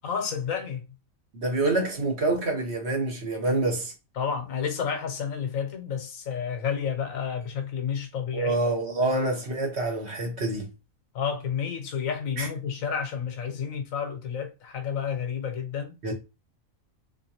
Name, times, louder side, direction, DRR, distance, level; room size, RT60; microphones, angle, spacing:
voice 1, 0.0-0.8 4.2-8.6 11.1-15.9, left 7 dB, 75° left, 1.2 m, -30 dB
voice 2, 1.3-3.9 8.3-10.7 12.4-12.5 16.0-16.1, right 2 dB, 55° right, 1.3 m, -26 dB
3.6 x 2.8 x 2.9 m
omnidirectional pair, 1.5 m